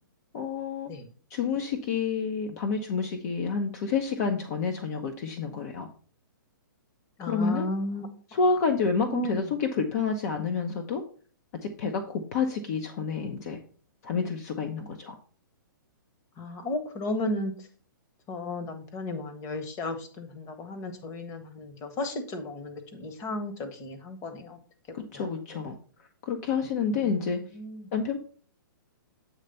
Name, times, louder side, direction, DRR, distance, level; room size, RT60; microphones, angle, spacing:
voice 1, 0.3-0.9 1.3-5.9 7.2-7.7 8.3-11.0 11.8-13.6 14.0-15.2 24.9-25.7 26.2-27.4 27.9-28.2, left 5 dB, 50° left, 5 dB, 0.8 m, -29 dB
voice 2, 7.2-8.1 9.0-9.5 16.4-17.5 18.3-24.6 25.1-25.3 27.5-27.9, left 2 dB, 30° left, 7 dB, 1.3 m, -34 dB
8.2 x 3.3 x 5.4 m, 0.43 s
hypercardioid pair, 130°, 11 cm